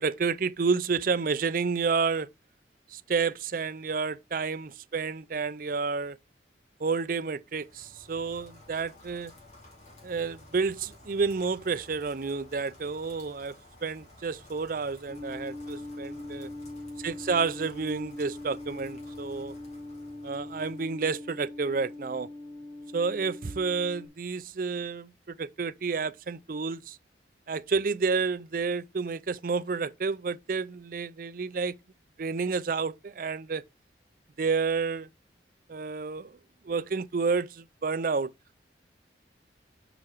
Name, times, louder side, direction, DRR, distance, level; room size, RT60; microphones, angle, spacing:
voice 1, 0.0-2.3 2.9-6.2 6.8-9.3 10.0-13.5 13.8-16.5 17.0-19.5 20.2-22.3 22.9-27.0 27.5-31.7 32.2-33.6 34.4-35.1 35.7-36.4 36.7-38.3, right 4 dB, 50° right, 0.5 m, -30 dB
Rain, 7.4-21.2, left 1 dB, 40° left, 2.5 m, -53 dB
sound 1, 15.1-24.1, left 2 dB, 25° left, 2.1 m, -42 dB
6.9 x 4.8 x 4.4 m
head